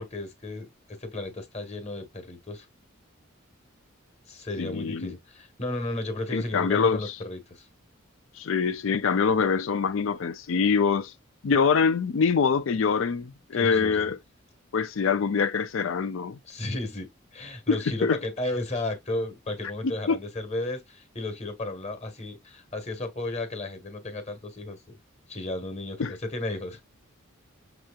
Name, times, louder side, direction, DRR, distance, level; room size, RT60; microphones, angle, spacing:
voice 1, 0.0-2.7 4.3-7.7 13.5-14.1 16.4-25.0 25.3-26.8, left 2 dB, 30° left, 1.3 m, -34 dB
voice 2, 4.6-5.1 6.3-7.0 8.4-11.1 11.4-14.2 14.7-16.4 17.7-18.2 19.8-20.2 26.0-26.1, left 5 dB, 65° left, 0.4 m, -24 dB
6.4 x 3.0 x 2.3 m
head